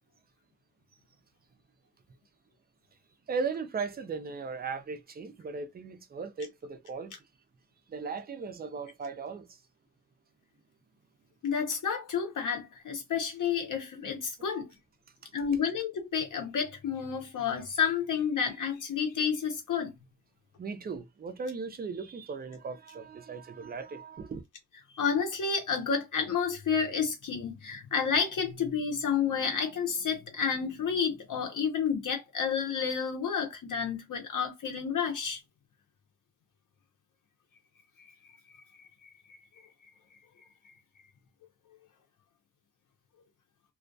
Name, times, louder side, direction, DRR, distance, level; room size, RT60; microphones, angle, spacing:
voice 1, 3.3-7.1 7.9-9.5 20.6-24.4, right 4 dB, 25° right, 0.4 m, -37 dB
voice 2, 11.4-14.7 15.3-19.9 25.0-35.4 39.0-39.1 39.6-39.7 40.4-40.7, left 6 dB, 55° left, 0.7 m, -30 dB
2.2 x 2.2 x 2.5 m
wide cardioid pair, 135°, 37 cm